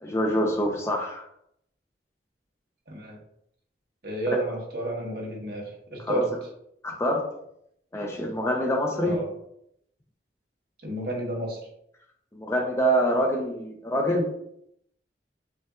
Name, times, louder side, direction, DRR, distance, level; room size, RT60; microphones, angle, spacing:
voice 1, 0.0-1.2 6.1-6.2 6.8-7.2 7.9-9.2 12.3-14.3, equal, 15° left, 0 dB, 0.6 m, -25 dB
voice 2, 2.9-3.2 4.0-6.3 9.0-9.3 10.8-11.6, right 2 dB, 60° right, -1 dB, 1.2 m, -31 dB
6.6 x 2.5 x 2.4 m, 0.74 s
head